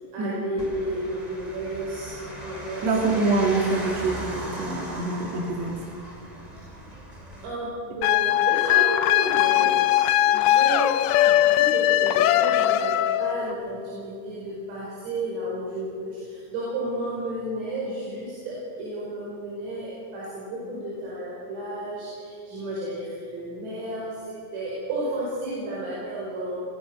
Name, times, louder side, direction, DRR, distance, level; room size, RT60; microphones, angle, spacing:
voice 1, 0.1-3.1 7.4-12.9 13.2-26.6, right 1 dB, 80° right, -6 dB, 8.0 m, -32 dB
sound 1, 0.6-7.5, right 1 dB, 10° right, 1.8 m, -38 dB
voice 2, 2.8-5.8, right 3 dB, 45° right, 0 dB, 2.4 m, -25 dB
sound 2, 8.0-13.5, left 14 dB, 80° left, 3.1 m, -20 dB
27.0 x 21.5 x 6.3 m, 2.3 s
omnidirectional pair, 5.9 m